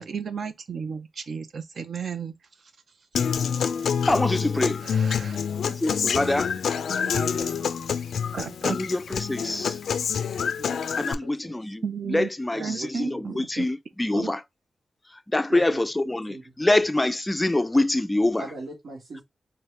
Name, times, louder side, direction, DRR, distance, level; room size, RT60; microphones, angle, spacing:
voice 1, 0.0-2.3 4.8-5.4 8.3-8.8 11.8-12.3 12.6-13.7 14.1-14.3, right 6 dB, 60° right, 0.6 m, -33 dB
Human voice / Acoustic guitar, 3.1-11.1, left 7 dB, 90° left, 0.3 m, -27 dB
voice 2, 4.1-4.8 5.6-6.5 8.6-9.8 11.0-14.4 15.3-18.4, left 2 dB, 15° left, 0.3 m, -25 dB
voice 3, 7.1-7.5 10.6-10.8 11.2-11.3 12.5-13.4 15.5-16.7 18.4-19.2, right 2 dB, 80° right, 1.5 m, -39 dB
3.9 x 2.7 x 3.3 m
wide cardioid pair, 110°, 0 cm